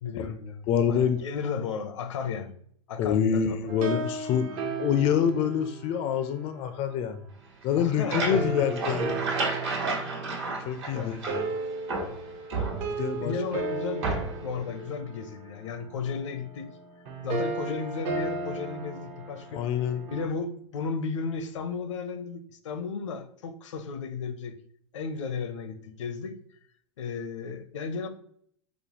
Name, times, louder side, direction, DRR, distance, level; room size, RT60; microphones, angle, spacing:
voice 1, 0.0-0.6 0.9-2.5 2.9-3.6 7.8-9.0 10.9-11.2 13.2-16.7 17.2-19.6 20.1-24.5 24.9-26.3 27.0-28.1, left 5 dB, 80° left, 9 dB, 0.6 m, -34 dB
voice 2, 0.7-1.2 3.0-7.2 7.6-9.3 10.6-11.5 12.9-13.3 19.5-20.0, left 8 dB, 35° left, 9 dB, 0.4 m, -26 dB
sound 1, 3.7-7.0 8.3-20.3, right 4 dB, 40° right, 0.6 m, -35 dB
sound 2, 7.6-11.6 11.9-13.2 14.0-14.5, right 3 dB, 60° right, 1.3 m, -32 dB
5.1 x 2.0 x 2.8 m, 0.63 s
hypercardioid pair, 115°, 16 cm